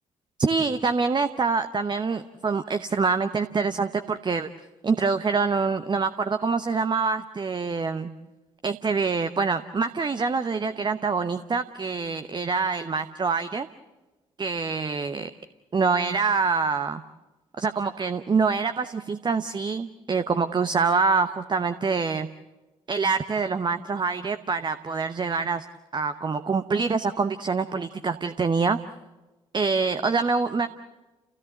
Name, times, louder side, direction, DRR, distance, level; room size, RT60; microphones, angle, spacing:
voice 1, 0.4-4.5 4.8-8.1 8.6-13.7 14.4-15.3 15.7-17.0 17.6-22.3 22.9-25.7 25.9-28.8 29.5-30.7, right 4 dB, 25° right, 10 dB, 0.9 m, -25 dB
30.0 x 16.5 x 7.9 m, 1.1 s
figure-of-eight pair, 40°, 16 cm